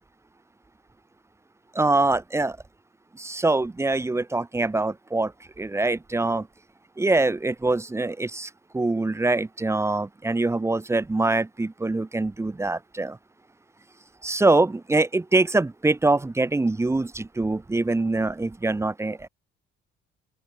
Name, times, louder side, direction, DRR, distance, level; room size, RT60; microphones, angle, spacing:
voice 1, 1.7-2.6 3.2-5.3 5.6-6.5 7.0-13.2 14.2-19.3, right 2 dB, 15° right, 0.8 m, -24 dB
open air
cardioid pair, 85°, 21 cm